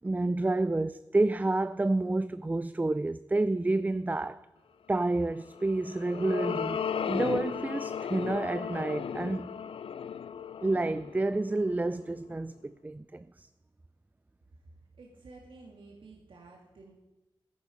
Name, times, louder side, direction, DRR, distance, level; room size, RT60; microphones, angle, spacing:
voice 1, 0.0-4.4 4.9-9.6 10.6-13.5, right 2 dB, 20° right, 0.4 m, -29 dB
sound 1, 5.5-12.1, left 7 dB, 85° left, 0.4 m, -35 dB
voice 2, 15.0-16.9, right 3 dB, 75° right, 2.0 m, -52 dB
13.5 x 10.5 x 5.1 m
wide cardioid pair, 75°, 9 cm